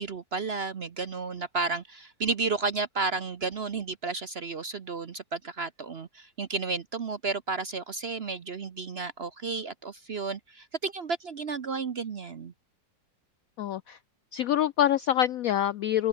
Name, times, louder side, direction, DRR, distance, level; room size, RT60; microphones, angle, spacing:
voice 1, 0.0-12.5, right 4 dB, 45° right, 0.8 m, -32 dB
voice 2, 13.6-14.0 14.3-16.1, left 11 dB, 75° left, 0.8 m, -25 dB
open air
omnidirectional pair, 2.0 m